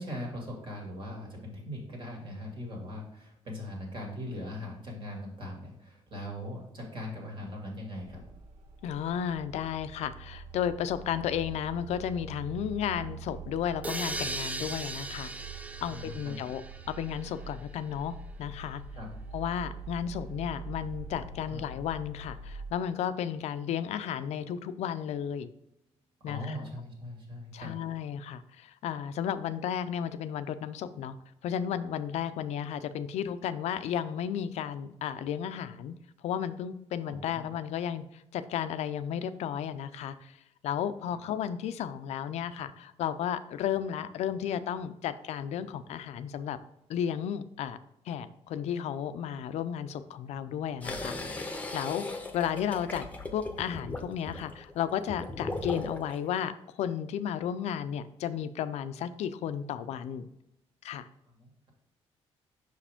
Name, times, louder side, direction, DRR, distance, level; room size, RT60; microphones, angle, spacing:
voice 1, 0.0-8.2 15.8-16.3 19.0-19.1 21.4-21.6 26.2-27.8 37.0-37.5 41.1-41.2 61.3-61.7, left 1 dB, 45° right, 0 dB, 2.2 m, -40 dB
sound 1, 8.0-22.7, right 4 dB, 70° right, 0.7 m, -44 dB
voice 2, 8.8-15.3 15.8-16.6 16.9-18.8 19.3-25.5 26.2-26.4 27.5-31.2 31.4-35.9 36.2-38.0 38.3-40.4 40.6-46.6 46.9-47.8 48.1-51.2 51.7-60.3 60.8-61.0, left 9 dB, 80° left, 12 dB, 0.4 m, -33 dB
sound 2, 13.8-17.6, right 2 dB, 15° right, 0.4 m, -38 dB
sound 3, 50.8-56.2, left 2 dB, 15° left, 0.8 m, -38 dB
5.9 x 4.9 x 3.5 m, 0.84 s
cardioid pair, 125°, 11 cm